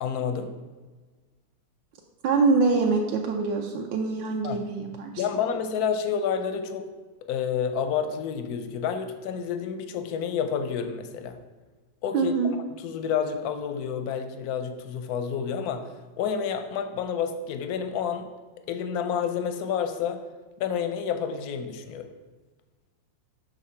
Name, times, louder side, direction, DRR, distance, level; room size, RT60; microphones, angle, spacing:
voice 1, 0.0-0.6 4.4-4.6 5.2-6.9 7.2-11.4 12.0-15.9 16.2-18.3 18.7-20.2 20.6-22.1, left 7 dB, 70° left, 8 dB, 0.9 m, -29 dB
voice 2, 2.2-5.2 12.1-12.5, right 4 dB, 75° right, 1 dB, 1.3 m, -24 dB
6.4 x 5.7 x 4.3 m, 1.3 s
omnidirectional pair, 2.1 m